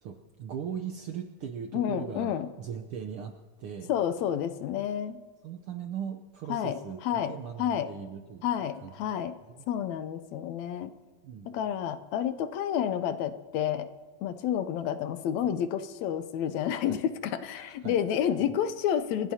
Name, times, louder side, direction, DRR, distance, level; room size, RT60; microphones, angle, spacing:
voice 1, 0.0-3.9 5.4-8.5 8.8-8.9 11.2-11.6 16.8-17.0 17.5-18.0 18.5-18.6, right 7 dB, 70° right, 5 dB, 1.3 m, -39 dB
voice 2, 1.7-2.5 3.9-5.2 6.5-6.8 7.0-7.3 7.6-7.9 8.4-9.3 9.7-10.9 11.5-13.9 14.2-19.3, left 9 dB, 75° left, 11 dB, 2.0 m, -30 dB
28.5 x 16.0 x 2.8 m, 1.4 s
omnidirectional pair, 3.3 m